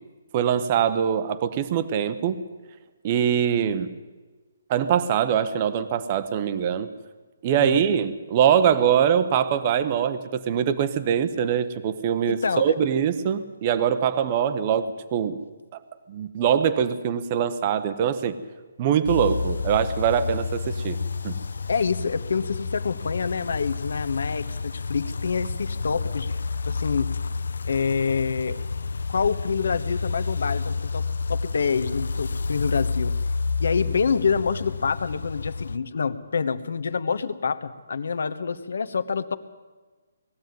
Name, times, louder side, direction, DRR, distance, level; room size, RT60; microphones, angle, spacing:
voice 1, 0.3-2.4 3.0-3.9 4.7-6.9 7.4-15.4 16.1-18.4 18.8-21.0 21.2-21.4, right 8 dB, 20° right, 12 dB, 0.8 m, -23 dB
voice 2, 12.3-12.6 21.7-26.4 26.6-27.1 27.7-28.6 29.1-31.0 31.3-33.1 33.6-39.4, left 5 dB, 60° left, 12 dB, 1.2 m, -26 dB
sound 1, 19.1-35.8, left 4 dB, 85° left, 0.6 m, -30 dB
20.0 x 14.5 x 9.3 m, 1.3 s
hypercardioid pair, 180°, 0 cm